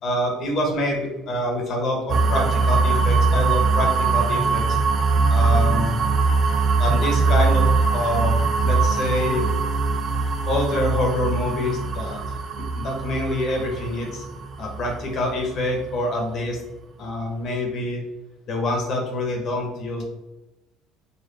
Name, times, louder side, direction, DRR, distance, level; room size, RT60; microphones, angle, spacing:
voice 1, 0.0-4.8 5.3-6.0 6.8-8.3 8.6-9.4 10.5-12.2 12.6-14.2 14.6-16.6 17.0-18.0 18.5-20.0, left 1 dB, 45° left, 1 dB, 1.1 m, -26 dB
sound 1, 2.1-15.9, right 4 dB, 40° right, 0.3 m, -21 dB
4.0 x 2.4 x 3.3 m, 1.0 s
cardioid pair, 130°, 0 cm